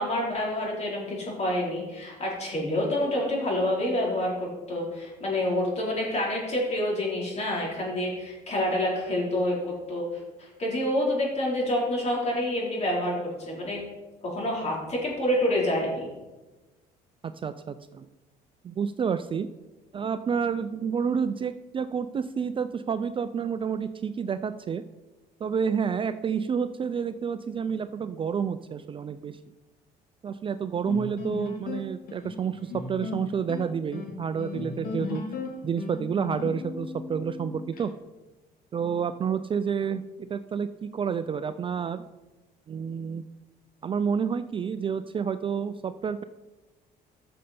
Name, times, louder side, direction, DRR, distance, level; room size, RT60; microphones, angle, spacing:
voice 1, 0.0-10.0 10.4-13.1 13.5-13.8 14.2-16.1, left 1 dB, 40° left, -2 dB, 4.0 m, -27 dB
voice 2, 17.2-18.1 18.6-19.5 19.9-24.8 25.4-29.4 30.2-35.2 35.6-37.9 38.7-42.0 42.7-43.2 43.8-46.2, right 6 dB, 30° right, 11 dB, 0.4 m, -29 dB
sound 1, 30.9-37.9, left 4 dB, 60° left, 1.9 m, -36 dB
14.0 x 6.5 x 4.3 m, 1.1 s
cardioid pair, 110°, 17 cm